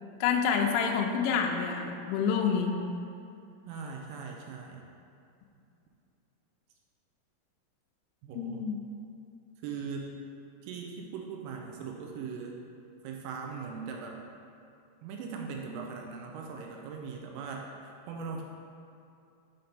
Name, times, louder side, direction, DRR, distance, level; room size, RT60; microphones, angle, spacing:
voice 1, 0.2-2.8 8.4-8.8, left 6 dB, 90° left, 2 dB, 2.5 m, -28 dB
voice 2, 3.7-4.8 8.2-8.7 9.6-10.1 10.6-12.6 13.0-14.2 15.0-17.7 18.1-18.4, right 5 dB, 85° right, 1 dB, 3.1 m, -40 dB
7.7 x 2.8 x 5.2 m, 2.6 s
omnidirectional pair, 5.9 m